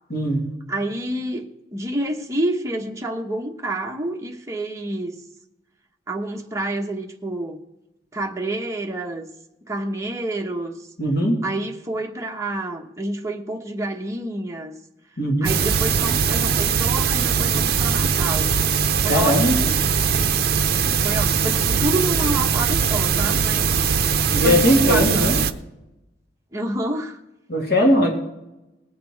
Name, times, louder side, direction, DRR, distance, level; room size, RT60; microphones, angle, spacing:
voice 1, 0.1-0.5 11.0-11.4 15.2-15.5 19.0-19.5 24.3-25.3 27.5-28.1, equal, 60° left, 0 dB, 2.6 m, -19 dB
voice 2, 0.7-5.2 6.1-7.6 8.1-9.3 9.7-10.9 11.4-14.8 15.4-18.5 19.0-19.8 21.0-23.7 24.4-25.5 26.5-27.2, right 1 dB, 15° right, 2 dB, 1.1 m, -28 dB
sound 1, 15.4-25.5, right 6 dB, 55° right, 0.6 m, -21 dB
19.5 x 7.7 x 4.6 m, 0.95 s
head